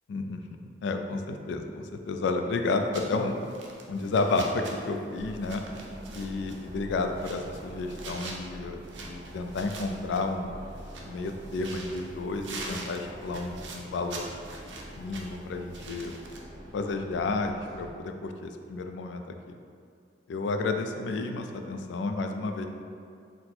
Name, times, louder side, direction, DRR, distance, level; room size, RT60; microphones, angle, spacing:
voice 1, 0.1-3.4 3.9-5.6 6.1-10.5 11.0-14.3 15.0-16.2 16.7-19.6 20.3-22.7, left 3 dB, 75° left, 5 dB, 0.3 m, -31 dB
sound 1, 2.9-16.4, right 3 dB, 80° right, 0.5 m, -45 dB
sound 2, 5.1-17.9, equal, 20° right, 0.6 m, -45 dB
4.1 x 2.1 x 4.3 m, 2.3 s
head